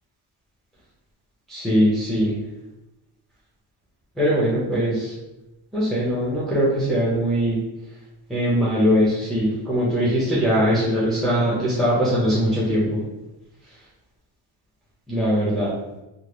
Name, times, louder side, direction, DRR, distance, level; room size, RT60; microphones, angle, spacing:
voice 1, 1.5-2.4 4.2-5.1 5.7-7.6 8.3-13.0 15.1-15.7, equal, ahead, -9 dB, 1.0 m, -21 dB
3.5 x 2.2 x 3.1 m, 1.0 s
cardioid pair, 90°, 46 cm